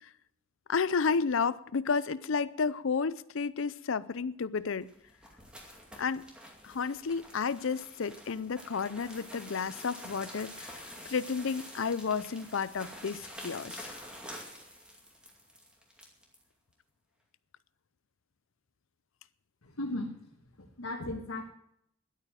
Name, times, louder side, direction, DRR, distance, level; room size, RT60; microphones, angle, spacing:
voice 1, 0.7-4.9 6.0-6.2 6.6-13.9, left 5 dB, 65° left, 0.5 m, -32 dB
sound 1, 4.8-16.4, equal, 5° right, 2.4 m, -47 dB
voice 2, 19.6-20.1 20.6-21.5, left 1 dB, 85° left, 1.5 m, -36 dB
11.0 x 9.0 x 9.0 m
head